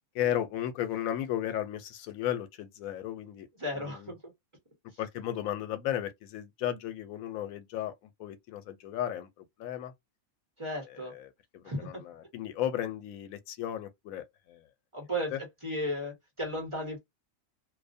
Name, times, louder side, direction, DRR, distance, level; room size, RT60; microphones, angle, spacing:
voice 1, 0.2-3.5 3.7-4.1 5.0-7.9 8.2-9.9 10.9-14.6 15.3-15.4, left 11 dB, 90° left, 1.0 m, -35 dB
voice 2, 3.6-4.2 10.6-11.1 11.6-12.0 14.9-15.3 15.6-17.0, equal, 25° right, 0.9 m, -34 dB
2.5 x 2.1 x 2.5 m
omnidirectional pair, 1.4 m